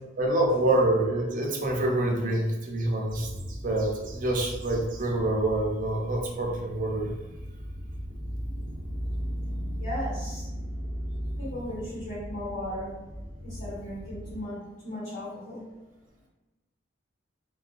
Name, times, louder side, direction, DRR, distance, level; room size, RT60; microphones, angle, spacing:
voice 1, 0.2-7.2, right 1 dB, 45° right, 0 dB, 0.4 m, -26 dB
sound 1, 3.1-14.4, equal, 5° left, 0.8 m, -37 dB
voice 2, 9.8-10.5 11.4-13.0 13.4-15.6, equal, 75° left, -13 dB, 1.2 m, -36 dB
2.5 x 2.1 x 2.4 m, 1.1 s
head